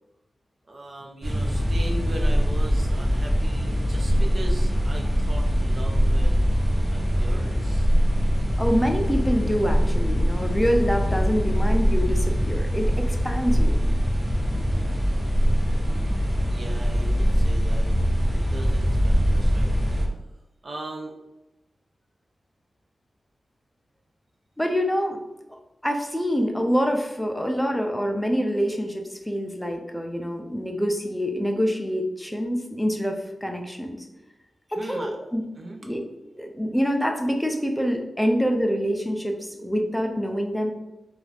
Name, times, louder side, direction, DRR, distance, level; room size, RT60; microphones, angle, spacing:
voice 1, 0.7-6.6 6.9-7.9 16.5-19.7 20.6-21.2 34.8-35.1 35.6-35.8, right 1 dB, 50° right, 1 dB, 0.5 m, -39 dB
sound 1, 1.2-20.0, equal, 35° right, 0.9 m, -22 dB
voice 2, 8.6-13.8 24.6-25.2 25.5-34.1 34.7-35.4 35.8-36.0 36.4-40.7, equal, 5° left, 3 dB, 0.4 m, -26 dB
2.5 x 2.3 x 3.3 m, 0.95 s
wide cardioid pair, 125°, 0 cm